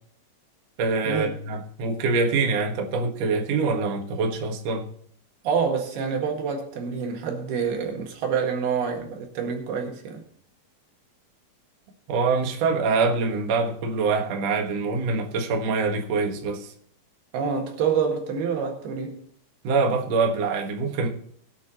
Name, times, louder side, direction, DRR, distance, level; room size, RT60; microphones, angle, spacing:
voice 1, 0.8-4.9 12.1-16.7 19.6-21.1, right 4 dB, 55° right, 2.2 m, -24 dB
voice 2, 5.5-10.2 17.3-19.2, right 6 dB, 80° right, 3.8 m, -27 dB
21.0 x 8.8 x 3.0 m
omnidirectional pair, 4.4 m